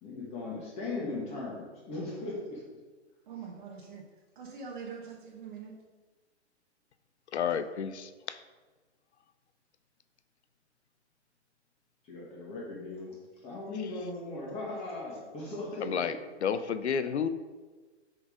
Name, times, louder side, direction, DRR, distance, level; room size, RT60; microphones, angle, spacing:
voice 1, 0.0-2.6 3.4-3.5 12.0-16.0, left 2 dB, 15° left, -4 dB, 1.7 m, -38 dB
voice 2, 3.3-4.0 4.4-5.7, right 6 dB, 45° right, -1 dB, 1.2 m, -43 dB
voice 3, 7.3-8.1 15.8-16.1 16.4-17.3, left 7 dB, 70° left, 12 dB, 0.8 m, -30 dB
6.4 x 5.7 x 5.0 m, 1.3 s
hypercardioid pair, 155°, 35 cm